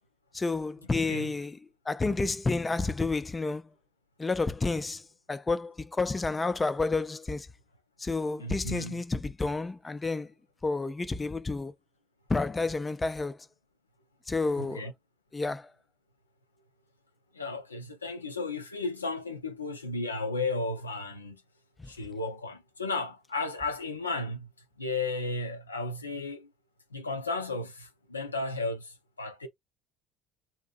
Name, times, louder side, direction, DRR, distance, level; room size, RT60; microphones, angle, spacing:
voice 1, 0.3-1.6 1.9-3.6 4.2-5.0 5.3-7.5 8.0-10.3 10.6-11.7 12.3-13.4 14.3-14.8 15.3-15.6, left 3 dB, 20° left, 0.4 m, -30 dB
voice 2, 8.4-9.0 14.6-14.9 17.3-21.4 21.9-24.5 24.8-26.5 26.9-29.5, left 3 dB, 90° left, 0.5 m, -34 dB
7.1 x 2.7 x 2.3 m
figure-of-eight pair, 60°, 0 cm